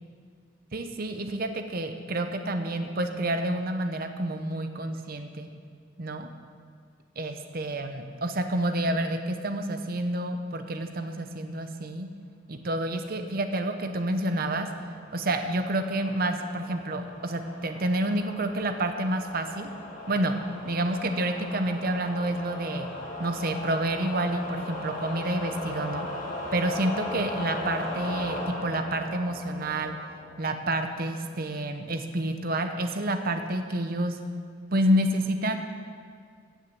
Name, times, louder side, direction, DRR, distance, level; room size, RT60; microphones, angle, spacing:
voice 1, 0.7-5.5 6.0-6.3 7.2-12.1 12.5-14.7 15.1-19.7 20.1-20.3 20.6-22.9 23.2-26.1 26.5-30.0 30.4-34.2 34.7-35.6, right 1 dB, 50° right, 7 dB, 0.9 m, -29 dB
sound 1, 14.2-30.7, left 1 dB, 45° left, 2.8 m, -38 dB
16.0 x 6.4 x 7.1 m, 2.1 s
head